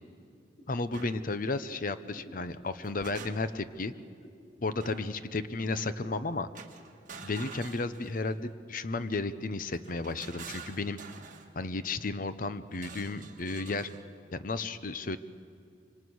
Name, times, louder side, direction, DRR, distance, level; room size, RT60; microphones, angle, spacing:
sound 1, 0.6-5.2 5.5-7.4, equal, 65° left, 5.7 m, -55 dB
voice 1, 0.7-3.9 4.6-6.5 7.2-11.0 11.6-13.9 14.3-15.2, left 3 dB, 50° left, 12 dB, 0.9 m, -33 dB
sound 2, 0.9-1.1 2.6-3.7 4.8-5.2 6.5-8.4 9.7-11.5 12.7-14.1, right 5 dB, 50° right, 1.8 m, -47 dB
26.0 x 24.5 x 6.4 m, 2.3 s
head